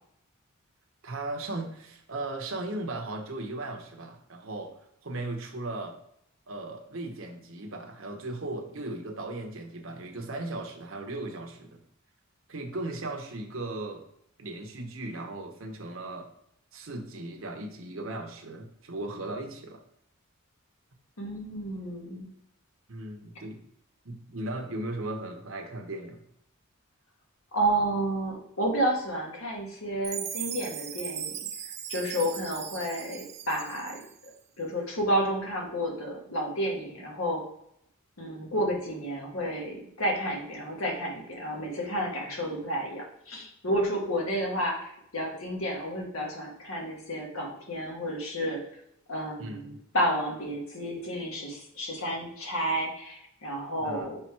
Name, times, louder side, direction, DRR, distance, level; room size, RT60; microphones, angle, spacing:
voice 1, 1.0-4.7 5.0-6.0 6.5-11.8 12.5-14.0 14.4-16.3 16.7-19.8 22.9-23.6 24.0-26.2 49.4-49.8 53.8-54.1, right 2 dB, 65° right, 3 dB, 1.0 m, -37 dB
voice 2, 21.2-22.3 27.5-31.4 31.9-34.0 34.6-37.4 38.2-48.6 49.1-54.2, right 1 dB, 75° left, 0 dB, 1.6 m, -31 dB
Chime, 30.0-34.3, right 9 dB, 30° right, 0.4 m, -38 dB
5.8 x 3.5 x 4.7 m, 0.74 s
head